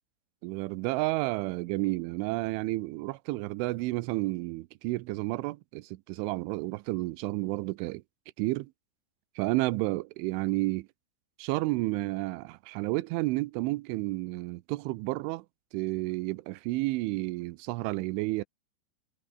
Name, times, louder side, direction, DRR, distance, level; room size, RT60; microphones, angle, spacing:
voice 1, 0.4-8.0 8.4-8.7 9.4-10.9 11.4-15.5 15.7-18.4, right 21 dB, 90° right, 3.2 m, -31 dB
omnidirectional pair, 5.4 m